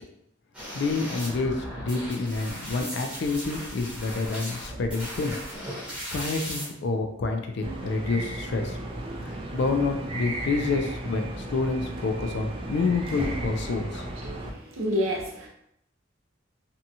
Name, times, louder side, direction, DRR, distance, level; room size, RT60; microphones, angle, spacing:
sound 1, 0.5-6.7, equal, 5° right, 0.8 m, -37 dB
voice 1, 0.7-5.4 6.1-8.8 9.3-14.1, left 3 dB, 60° left, 4 dB, 0.4 m, -28 dB
sound 2, 7.6-14.5, right 1 dB, 25° right, 0.3 m, -34 dB
voice 2, 14.8-15.5, equal, 85° right, -1 dB, 0.7 m, -27 dB
2.8 x 2.3 x 2.6 m, 0.76 s
head